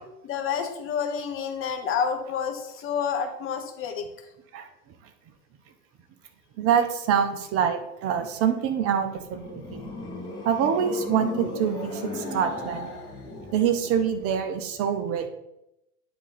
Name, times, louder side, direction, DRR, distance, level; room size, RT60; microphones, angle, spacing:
voice 1, 0.2-4.0, left 7 dB, 30° left, 4 dB, 1.1 m, -29 dB
voice 2, 6.6-9.9 10.4-12.9 13.5-15.3, right 8 dB, 30° right, 9 dB, 0.7 m, -25 dB
sound 1, 9.0-14.4, left 2 dB, 10° left, 2.0 m, -36 dB
9.2 x 3.8 x 4.2 m, 0.88 s
hypercardioid pair, 115°, 45 cm